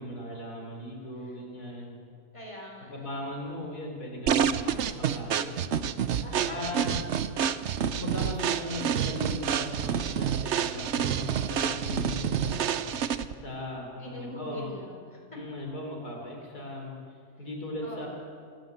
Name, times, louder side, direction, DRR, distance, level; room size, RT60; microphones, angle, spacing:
voice 1, 0.0-2.0 2.9-5.7 6.4-6.9 7.9-12.7 13.4-14.7 15.3-17.0 17.4-18.1, left 1 dB, 80° left, 0 dB, 4.3 m, -38 dB
voice 2, 2.3-3.3 6.2-6.6 14.0-15.4 17.3-17.5 17.8-18.1, left 1 dB, 20° left, -1 dB, 4.2 m, -43 dB
sound 1, 4.3-13.4, right 8 dB, 55° right, 0.9 m, -28 dB
26.5 x 13.0 x 7.9 m, 2.1 s
omnidirectional pair, 1.6 m